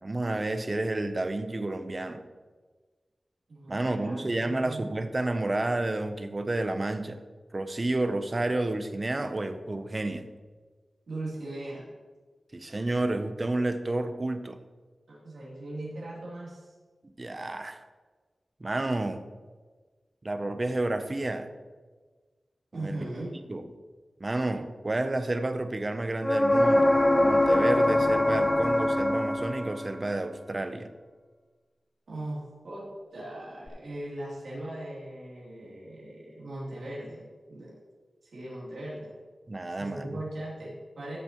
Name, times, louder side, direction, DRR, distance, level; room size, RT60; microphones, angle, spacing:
voice 1, 0.0-2.2 3.7-7.2 7.5-10.3 12.5-14.6 17.2-17.8 18.6-19.2 20.2-21.5 22.8-23.0 23.5-23.6 24.2-30.9 39.5-40.2, right 2 dB, 35° right, 9 dB, 0.7 m, -30 dB
voice 2, 3.5-4.8 11.1-11.9 15.1-16.7 22.7-23.3 32.1-32.9 33.1-37.7 38.2-39.1 39.7-41.2, right 1 dB, 80° right, -7 dB, 3.1 m, -39 dB
sound 1, 26.2-30.0 33.7-33.8, left 1 dB, 15° left, 0.5 m, -23 dB
13.0 x 6.9 x 3.1 m, 1.4 s
wide cardioid pair, 70°, 0 cm